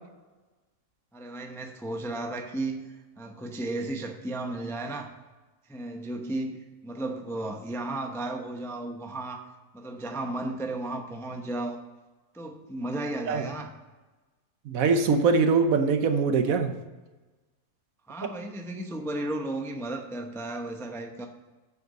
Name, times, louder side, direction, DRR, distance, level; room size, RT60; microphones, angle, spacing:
voice 1, 1.1-2.9 3.2-5.1 5.6-9.5 9.7-11.8 12.3-13.7 18.1-21.3, right 2 dB, 5° left, 4 dB, 0.4 m, -34 dB
voice 2, 14.7-16.7 18.2-18.3, right 4 dB, 70° right, 8 dB, 1.2 m, -23 dB
7.8 x 6.6 x 5.3 m, 1.2 s
omnidirectional pair, 1.6 m